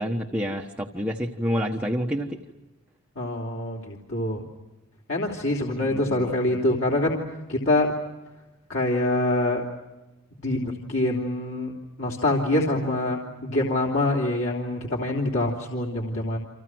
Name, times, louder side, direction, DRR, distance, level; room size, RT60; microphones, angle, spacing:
voice 1, 0.0-2.4 5.8-6.6, equal, 5° right, 0 dB, 1.1 m, -29 dB
voice 2, 3.1-4.4 5.1-7.2 7.5-7.9 8.7-9.6 10.4-11.7 12.0-16.4, left 2 dB, 70° left, -2 dB, 3.2 m, -25 dB
30.0 x 26.5 x 6.2 m, 1.1 s
head